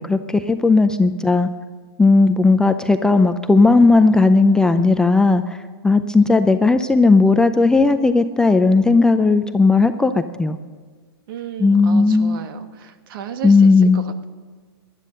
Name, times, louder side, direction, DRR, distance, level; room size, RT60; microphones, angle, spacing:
voice 1, 0.0-1.5 2.0-5.6 5.8-10.6 11.6-12.4 13.4-14.0, left 3 dB, 5° left, 8 dB, 0.4 m, -15 dB
voice 2, 11.3-14.2, right 8 dB, 55° right, 9 dB, 1.4 m, -34 dB
18.5 x 11.5 x 6.5 m, 1.5 s
hypercardioid pair, 140°, 13 cm